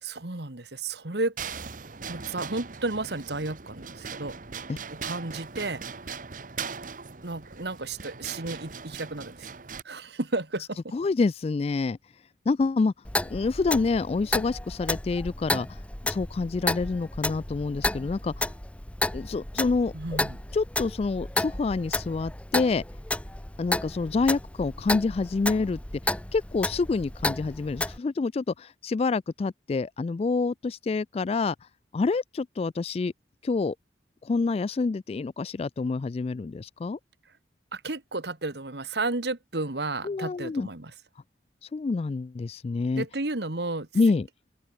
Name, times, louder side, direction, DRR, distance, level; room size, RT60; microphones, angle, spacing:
voice 1, 0.0-1.4 2.1-4.4 4.9-5.8 7.2-9.5 9.9-10.9 19.9-20.4 37.7-40.9 43.0-43.9, right 2 dB, 65° right, 1.7 m, -32 dB
sound 1, 1.4-9.8, right 6 dB, 45° right, 1.1 m, -39 dB
voice 2, 10.9-12.0 12.5-12.9 13.3-18.4 19.1-19.9 20.5-22.8 23.6-25.8 26.3-31.6 31.9-33.1 33.4-33.7 34.2-37.0 40.0-40.7 41.7-43.0 43.9-44.3, left 4 dB, 35° left, 0.3 m, -27 dB
Clock, 13.0-28.0, left 2 dB, 5° left, 0.7 m, -32 dB
open air
head